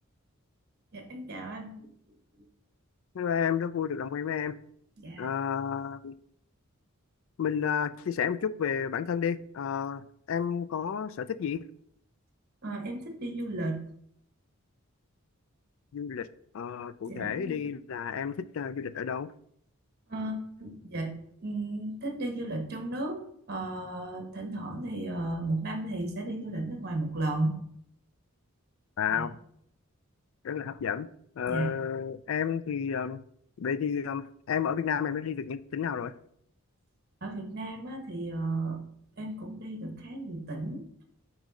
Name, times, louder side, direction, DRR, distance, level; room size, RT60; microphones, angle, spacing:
voice 1, 0.9-1.9 5.0-5.3 12.6-13.8 17.0-17.6 20.1-21.1 21.4-27.6 29.1-29.3 31.5-31.7 37.2-38.9 39.2-40.8, right 2 dB, 45° right, 3 dB, 1.0 m, -34 dB
voice 2, 3.1-4.6 5.2-6.1 7.4-10.0 10.3-11.7 15.9-16.3 16.5-19.3 29.0-29.3 30.4-31.1 31.4-33.2 33.6-36.1, left 7 dB, 65° left, 14 dB, 0.3 m, -31 dB
8.9 x 3.1 x 3.7 m, 0.69 s
head